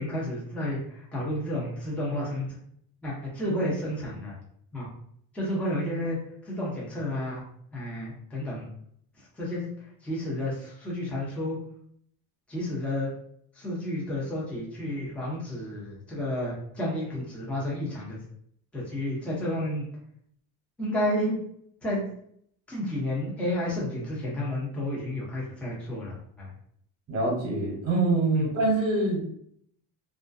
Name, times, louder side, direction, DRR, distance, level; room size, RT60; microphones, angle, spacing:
voice 1, 0.0-2.6 3.0-4.3 4.7-4.9 5.3-6.2 6.4-7.4 7.7-8.7 9.2-9.7 10.0-11.6 12.5-13.1 13.5-18.2 18.7-19.8 20.8-21.4 21.8-22.0 22.7-26.5 28.3-28.5, left 1 dB, 5° left, -6 dB, 0.7 m, -31 dB
voice 2, 27.1-29.2, right 2 dB, 35° right, -3 dB, 1.0 m, -25 dB
2.3 x 2.1 x 2.5 m, 0.66 s
cardioid pair, 120°, 42 cm